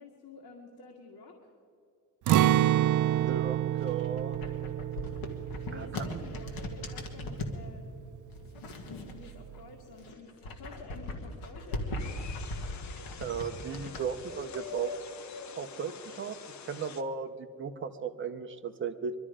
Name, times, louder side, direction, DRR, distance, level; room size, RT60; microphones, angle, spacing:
voice 1, 0.0-1.5 5.6-7.9 9.1-12.3, left 3 dB, 85° left, -1 dB, 2.0 m, -50 dB
Acoustic guitar, 2.3-8.2 8.5-8.6 9.1-9.6, right 13 dB, 55° right, 0.4 m, -29 dB
voice 2, 3.1-4.4 5.7-6.2 13.2-14.9 15.6-19.1, right 6 dB, 30° right, 8 dB, 0.8 m, -36 dB
sound 1, 3.7-7.6 8.3-9.6 9.9-14.0, left 1 dB, 65° left, 1.8 m, -39 dB
sound 2, 12.0-17.0, left 6 dB, 45° left, 0.8 m, -44 dB
22.5 x 12.5 x 5.0 m, 2.5 s
cardioid pair, 165°, 38 cm